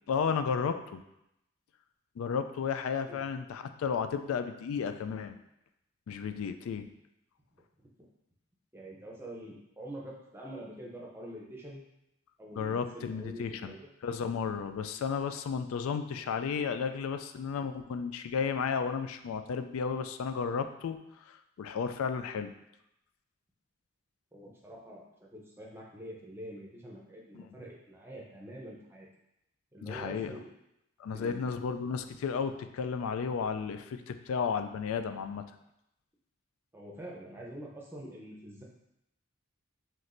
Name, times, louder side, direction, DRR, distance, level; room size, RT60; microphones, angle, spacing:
voice 1, 0.1-1.0 2.2-5.4 6.1-6.9 12.6-13.7 14.0-22.5 27.3-27.5 29.8-30.4 31.0-35.4, left 6 dB, 85° left, 9 dB, 0.3 m, -33 dB
voice 2, 8.7-11.8 12.4-13.9 24.3-29.1 29.7-30.5 31.1-31.7 36.7-38.6, right 1 dB, 10° right, -3 dB, 0.6 m, -46 dB
5.8 x 3.1 x 2.6 m, 0.83 s
head